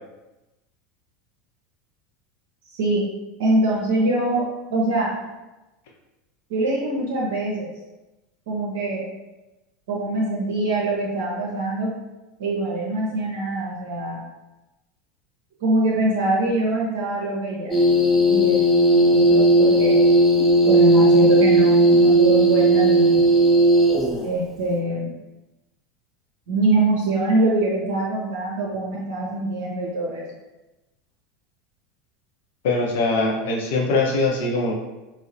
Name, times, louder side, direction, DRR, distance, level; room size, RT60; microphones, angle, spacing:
voice 1, 2.7-3.1 3.4-5.1 6.5-7.7 8.5-9.0 9.9-11.9 12.4-14.2 15.6-17.7 18.3-20.0 20.6-23.2 24.2-25.1 26.5-30.3, right 1 dB, 60° right, -4 dB, 0.6 m, -23 dB
sound 1, 17.7-24.2, right 1 dB, 5° left, 0.6 m, -16 dB
voice 2, 32.6-34.7, left 3 dB, 60° left, -2 dB, 0.6 m, -22 dB
4.6 x 2.0 x 2.6 m, 1.1 s
figure-of-eight pair, 75°, 0 cm